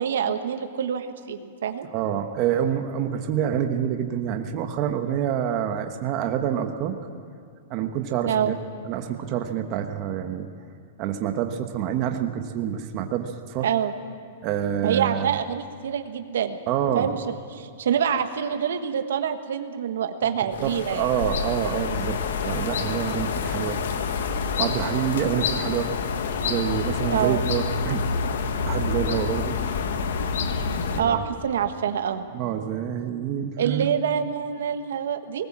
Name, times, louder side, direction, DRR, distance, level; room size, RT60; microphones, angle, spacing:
voice 1, 0.0-1.9 8.2-8.5 13.6-13.9 14.8-16.6 16.9-17.2 17.5-21.1 27.1-27.4 31.0-32.2 33.6-35.5, right 8 dB, 80° right, 7 dB, 1.4 m, -26 dB
voice 2, 1.9-7.0 7.7-8.5 8.8-10.5 11.0-13.7 14.4-15.3 16.7-17.1 20.6-23.8 24.6-25.9 26.4-28.0 28.6-29.5 30.9-31.2 32.3-33.9, right 9 dB, 35° right, 5 dB, 1.2 m, -27 dB
sound 1, 20.5-31.0, left 5 dB, 75° left, 1.5 m, -27 dB
20.0 x 19.0 x 7.5 m, 2.3 s
supercardioid pair, 165°, 0 cm